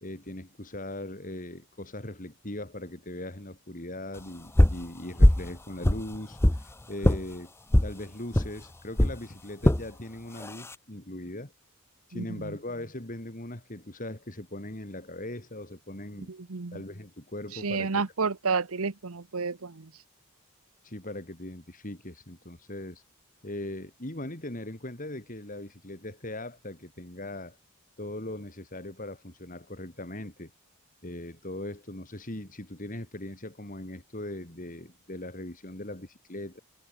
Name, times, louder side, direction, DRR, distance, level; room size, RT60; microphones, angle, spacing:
voice 1, 0.0-7.5 7.8-11.5 12.1-16.3 16.7-18.0 20.8-23.0 23.4-27.6 28.0-30.5 31.0-36.6, left 1 dB, 35° left, 3.3 m, -39 dB
sound 1, 4.6-4.8 5.2-5.5 5.8-6.6 7.0-7.2 7.7-7.9 8.3-8.5 9.0-9.2 9.6-9.8 10.4-10.7, left 1 dB, 10° left, 0.7 m, -20 dB
voice 2, 12.1-12.6 16.3-16.8 17.5-19.9, right 4 dB, 70° right, 1.0 m, -31 dB
head